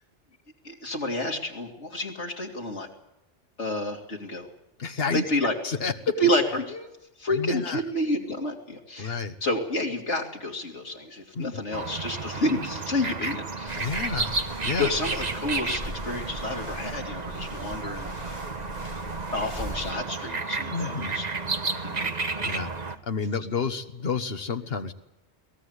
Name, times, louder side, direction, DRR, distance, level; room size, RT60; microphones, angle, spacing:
voice 1, 0.6-2.9 3.6-4.5 5.1-5.5 6.2-6.9 7.2-14.0 14.8-18.1 19.3-21.3 21.8-22.1, left 1 dB, 80° left, 0 dB, 3.4 m, -29 dB
voice 2, 4.8-5.2 5.6-5.9 7.3-7.8 9.0-9.4 11.3-11.5 13.8-14.4 14.6-14.9 20.7-21.2 21.7-22.0 22.4-22.7 23.1-24.9, left 5 dB, 55° left, 9 dB, 1.5 m, -30 dB
sound 1, 11.7-23.0, right 3 dB, 40° right, 1.3 m, -32 dB
sound 2, 13.7-19.9, equal, 20° left, 3.8 m, -40 dB
22.5 x 18.5 x 8.2 m, 0.90 s
omnidirectional pair, 1.2 m